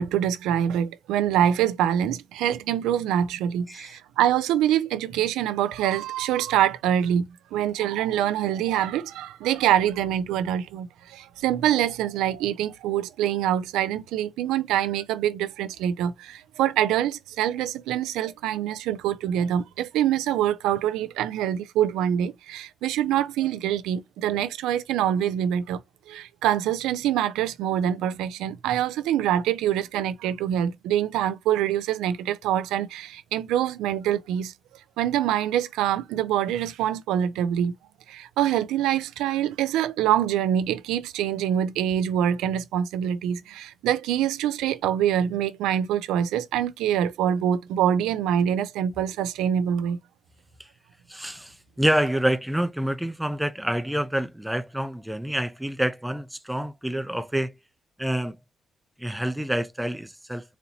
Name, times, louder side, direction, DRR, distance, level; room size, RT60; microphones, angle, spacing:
voice 1, 0.0-25.8 26.1-34.5 35.0-37.7 38.1-50.0, right 10 dB, 90° right, 0.3 m, -25 dB
voice 2, 3.7-4.0 51.1-57.5 58.0-58.4 59.0-60.6, right 1 dB, 5° right, 0.5 m, -27 dB
4.0 x 2.8 x 2.7 m
supercardioid pair, 70°, 0 cm